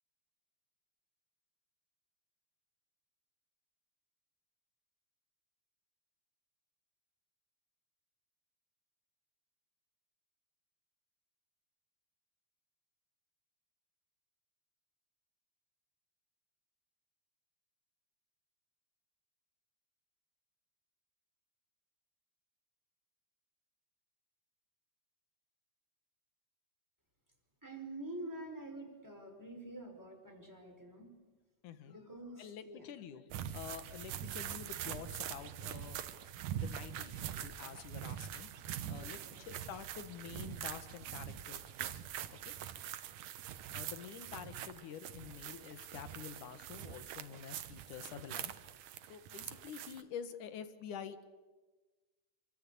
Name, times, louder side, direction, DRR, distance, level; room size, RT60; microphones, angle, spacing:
voice 1, 27.6-31.1 31.8-32.8 38.8-39.4, right 1 dB, 5° right, 1 dB, 5.0 m, -47 dB
voice 2, 31.6-32.0 32.4-36.0 36.5-38.5 38.9-42.0 42.5-42.6 43.7-48.5 49.1-51.2, left 8 dB, 75° left, 11 dB, 2.9 m, -48 dB
sound 1, 33.3-50.0, right 10 dB, 80° right, 2.7 m, -44 dB
28.0 x 24.0 x 8.5 m, 1.3 s
omnidirectional pair, 3.6 m